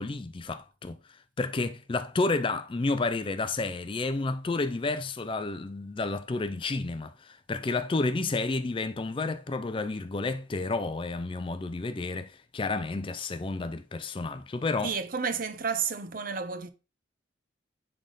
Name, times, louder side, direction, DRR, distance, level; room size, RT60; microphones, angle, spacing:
voice 1, 0.0-14.9, left 3 dB, 25° left, 0.4 m, -31 dB
voice 2, 14.8-16.7, right 5 dB, 45° right, 0.6 m, -31 dB
10.0 x 3.5 x 3.8 m
head